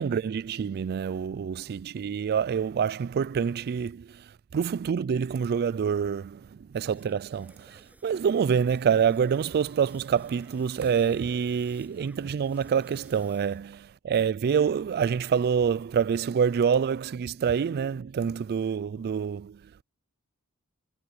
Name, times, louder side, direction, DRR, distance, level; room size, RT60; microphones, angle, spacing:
voice 1, 0.0-19.8, right 7 dB, 45° right, 0.3 m, -27 dB
sound 1, 6.7-13.6, right 1 dB, 5° right, 7.1 m, -57 dB
head